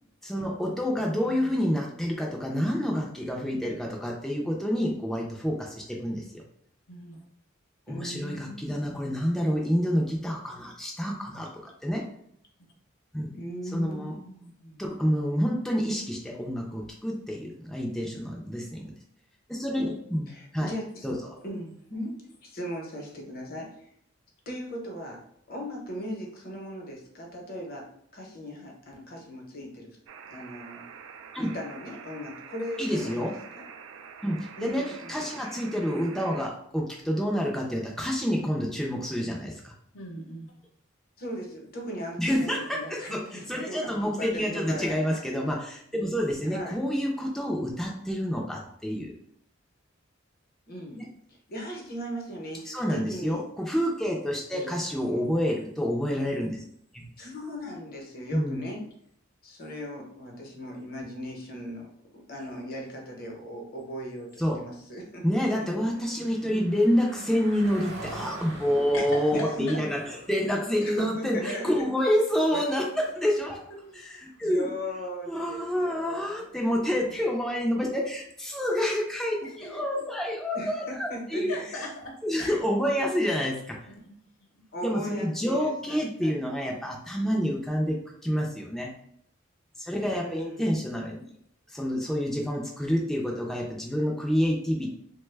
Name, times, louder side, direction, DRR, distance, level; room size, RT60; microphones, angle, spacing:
voice 1, 0.2-6.4 7.9-12.0 13.1-13.3 13.7-14.2 14.8-18.9 19.5-20.7 21.0-21.3 31.3-31.5 32.8-33.3 34.2-39.7 42.2-49.1 51.0-51.1 52.7-56.6 56.9-57.0 58.3-58.6 64.4-64.6 65.2-73.6 73.9-74.7 75.3-81.8 82.2-83.7 84.8-88.9 89.8-91.4 91.7-94.9, equal, ahead, -2 dB, 0.4 m, -28 dB
voice 2, 1.2-1.6 7.9-9.2 13.3-14.9 20.3-21.1 21.4-23.9 24.5-25.2 25.5-27.9 28.1-30.0 30.3-30.8 31.4-33.7 34.6-35.4 35.8-36.1 41.2-43.9 44.2-45.6 46.4-46.8 50.7-51.0 51.5-53.4 54.5-55.4 56.1-56.4 57.2-58.8 59.4-65.2 66.2-66.5 67.1-67.2 69.3-69.8 70.8-71.9 72.5-72.7 74.4-77.2 80.5-81.6 84.7-86.5 90.1-90.9, equal, 50° left, 0 dB, 0.8 m, -39 dB
voice 3, 6.9-7.2 39.9-40.5 68.9-69.8 71.4-71.6 73.8-74.0 79.4-80.0 81.5-82.6 83.9-84.1 84.5-84.6, equal, 85° left, 0 dB, 0.8 m, -38 dB
sound 1, 30.1-36.5, right 6 dB, 80° right, 0.3 m, -46 dB
Car passing by, 65.0-76.7, right 2 dB, 55° right, 0.7 m, -48 dB
3.1 x 2.1 x 3.3 m, 0.68 s
head